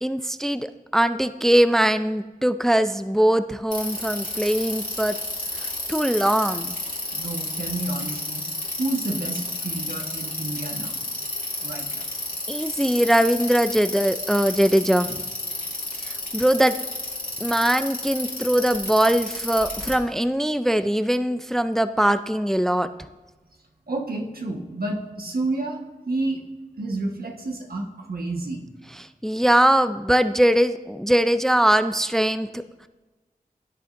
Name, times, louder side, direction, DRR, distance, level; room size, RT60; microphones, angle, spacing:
voice 1, 0.0-5.2 5.6-6.8 12.5-15.2 16.0-16.8 17.4-22.9 29.2-32.6, right 1 dB, 5° left, 11 dB, 0.4 m, -21 dB
Bicycle, 3.7-19.9, left 2 dB, 60° left, 2.3 m, -31 dB
voice 2, 7.1-8.5 8.8-11.0 11.6-12.1 23.9-26.4 26.8-28.6, right 2 dB, 80° right, 1 dB, 1.4 m, -30 dB
16.0 x 8.3 x 2.6 m, 1.2 s
wide cardioid pair, 40°, 15 cm